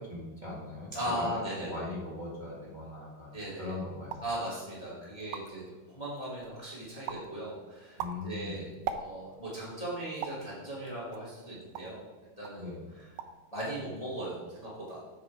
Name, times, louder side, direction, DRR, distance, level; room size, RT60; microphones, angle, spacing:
voice 1, 0.0-4.2 8.0-8.6 12.6-12.8, left 2 dB, 20° right, -7 dB, 1.4 m, -40 dB
voice 2, 0.9-1.9 3.3-3.8 4.2-12.0 12.4-13.2 13.5-15.0, right 1 dB, 15° left, -7 dB, 1.8 m, -38 dB
sound 1, 4.0-4.4 4.9-5.0 5.2-5.7 6.2-6.6 7.1-7.3 7.8-9.4 10.2-10.5 11.1-12.0 12.4-12.6 13.0-13.5 13.7-14.2, right 8 dB, 80° right, 1.6 m, -40 dB
8.4 x 4.9 x 4.8 m, 1.3 s
omnidirectional pair, 3.7 m